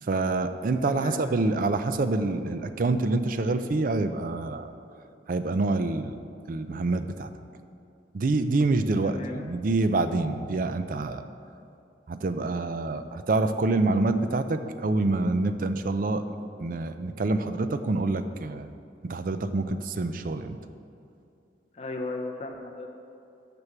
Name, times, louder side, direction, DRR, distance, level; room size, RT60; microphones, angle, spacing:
voice 1, 0.0-4.7 5.3-6.1 6.5-7.3 8.1-11.2 12.1-16.2 16.6-18.7 19.0-20.6, right 3 dB, 45° right, 10 dB, 0.4 m, -26 dB
voice 2, 0.9-1.2 9.0-9.5 21.7-22.9, left 2 dB, 35° left, 1 dB, 0.5 m, -36 dB
6.5 x 6.1 x 7.2 m, 2.6 s
head